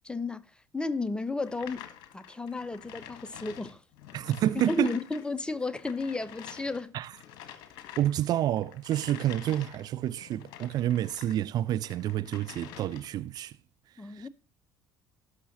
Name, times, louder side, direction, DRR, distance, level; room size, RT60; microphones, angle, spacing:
voice 1, 0.0-0.4 0.7-1.9 2.1-3.8 4.7-7.0 14.0-14.3, left 3 dB, 10° left, 0.9 m, -33 dB
sound 1, 1.4-11.4 11.8-13.2, left 10 dB, 60° left, 1.4 m, -48 dB
voice 2, 4.1-4.9 6.9-7.1 8.0-13.6 14.0-14.3, right 12 dB, 50° right, 0.4 m, -29 dB
17.5 x 6.4 x 2.9 m
figure-of-eight pair, 55°, 9 cm